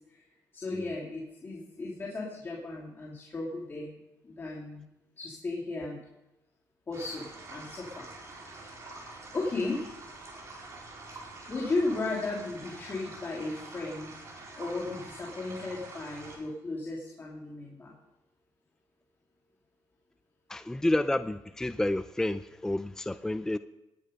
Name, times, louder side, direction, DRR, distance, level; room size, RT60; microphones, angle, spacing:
voice 1, 0.5-3.9 4.2-4.8 5.2-6.0 6.9-8.1 9.3-9.9 11.5-14.1 14.6-17.9, left 2 dB, 30° left, -3 dB, 2.8 m, -35 dB
sound 1, 6.9-16.4, right 2 dB, 45° right, 4.8 m, -46 dB
voice 2, 20.5-23.6, left 1 dB, 5° left, 12 dB, 0.4 m, -30 dB
19.0 x 10.5 x 5.3 m, 0.95 s
cardioid pair, 105°, 7 cm